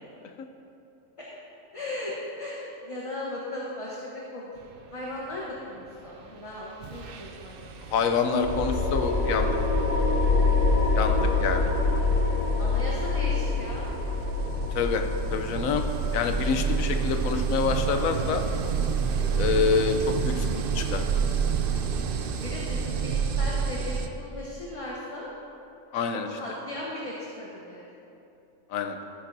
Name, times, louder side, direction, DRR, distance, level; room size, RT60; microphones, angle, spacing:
voice 1, 1.7-4.5 4.9-7.7 12.6-13.9 22.0-22.1 22.4-25.3 26.3-27.9, left 1 dB, 25° left, -5 dB, 1.1 m, -37 dB
sound 1, 6.3-6.5 6.8-24.1, right 6 dB, 55° right, 0.6 m, -30 dB
voice 2, 7.9-9.6 11.0-11.7 14.7-15.0 15.3-15.8 16.1-18.4 19.4-20.0 20.2-21.0 25.9-26.3 28.7-29.0, left 6 dB, 90° left, 5 dB, 1.1 m, -26 dB
sound 2, 8.4-19.5, left 3 dB, 45° left, 1.5 m, -26 dB
13.0 x 10.5 x 2.7 m, 2.8 s
omnidirectional pair, 1.4 m